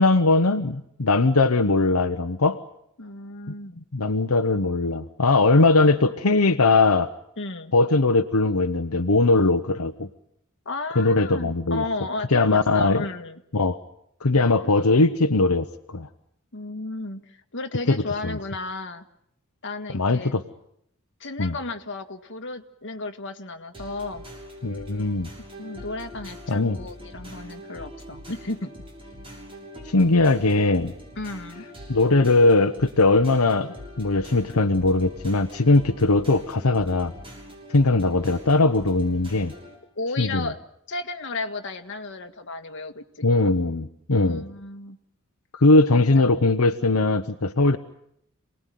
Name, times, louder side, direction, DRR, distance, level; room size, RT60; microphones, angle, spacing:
voice 1, 0.0-2.6 3.9-7.1 7.7-10.1 10.9-11.8 12.3-13.0 13.5-13.8 14.2-16.1 17.9-18.4 19.9-20.4 21.4-21.5 24.6-25.3 26.5-26.8 29.8-30.9 31.9-37.1 37.7-39.5 40.2-40.5 43.2-44.4 45.5-47.8, left 3 dB, 80° left, 6 dB, 1.0 m, -20 dB
voice 2, 3.0-3.8 7.4-7.7 10.6-13.4 16.5-19.0 19.6-20.3 21.2-24.2 25.6-28.7 31.2-31.6 39.9-40.6 40.9-43.2 44.2-45.0 45.9-46.3, left 2 dB, 55° left, 5 dB, 1.8 m, -33 dB
sound 1, 23.7-39.8, equal, 25° right, 6.8 m, -43 dB
28.0 x 19.5 x 9.3 m, 0.74 s
head